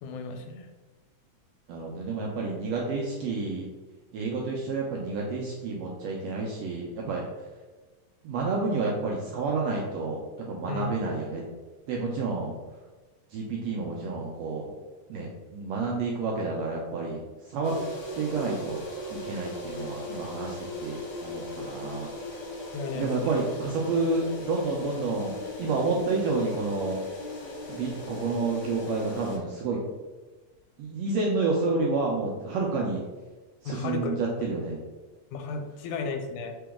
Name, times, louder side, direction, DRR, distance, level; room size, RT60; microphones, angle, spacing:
voice 1, 0.0-0.7 10.7-10.9 22.7-23.4 33.7-34.2 35.3-36.6, left 4 dB, 85° left, 4 dB, 2.1 m, -34 dB
voice 2, 1.7-3.7 4.1-7.3 8.2-10.2 10.5-11.4 11.9-12.5 13.3-14.7 15.1-17.2 17.5-17.7 18.2-18.8 19.1-22.1 23.0-27.0 27.7-29.8 30.8-33.0 33.6-34.8, right 3 dB, 80° right, -2 dB, 1.5 m, -29 dB
sound 1, 17.6-29.4, left 1 dB, 55° left, 1.7 m, -38 dB
3.9 x 3.8 x 3.5 m, 1.2 s
omnidirectional pair, 3.4 m